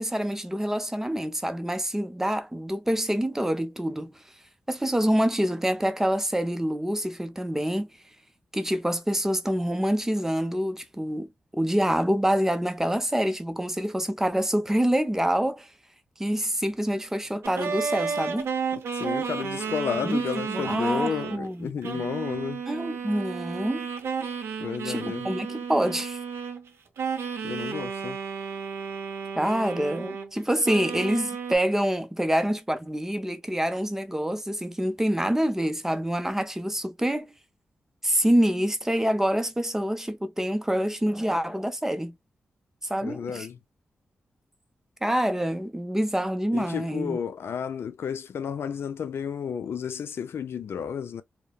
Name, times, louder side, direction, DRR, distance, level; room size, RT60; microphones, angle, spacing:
voice 1, 0.0-4.1 4.7-7.9 8.5-11.3 11.5-15.7 16.2-18.5 20.0-22.1 22.7-23.9 24.8-26.2 29.4-37.3 38.0-42.2 42.9-43.5 45.0-47.2, equal, 10° right, 0.6 m, -26 dB
sound 1, 17.4-21.4 21.8-26.7 27.0-30.3 30.6-31.6, right 6 dB, 90° right, 0.6 m, -32 dB
voice 2, 18.9-22.6 24.6-25.3 27.4-28.2 43.0-43.6 46.5-51.2, left 7 dB, 75° left, 0.3 m, -32 dB
2.8 x 2.1 x 2.2 m
cardioid pair, 65°, 4 cm